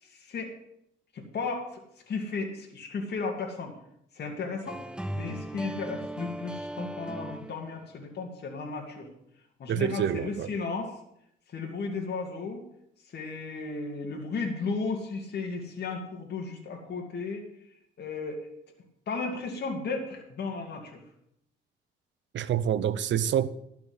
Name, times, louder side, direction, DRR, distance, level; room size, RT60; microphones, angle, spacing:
voice 1, 0.0-0.5 1.1-1.8 2.1-3.7 4.1-4.8 5.1-9.1 9.6-10.9 11.5-12.6 13.1-17.4 18.0-18.5 19.1-21.0, left 4 dB, 55° left, 1 dB, 2.5 m, -34 dB
sound 1, 4.6-7.9, right 1 dB, 5° right, 0.6 m, -37 dB
voice 2, 9.7-10.5 22.3-23.5, right 9 dB, 70° right, 16 dB, 0.7 m, -27 dB
12.0 x 6.0 x 7.8 m, 0.74 s
cardioid pair, 90°, 20 cm